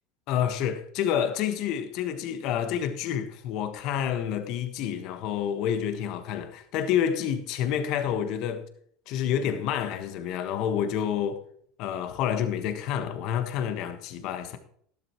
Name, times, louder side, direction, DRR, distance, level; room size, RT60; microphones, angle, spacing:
voice 1, 0.3-8.7 9.1-11.4 11.8-14.6, left 9 dB, 60° left, 1.4 m, -28 dB
12.0 x 12.0 x 3.0 m
hypercardioid pair, 90°, 0 cm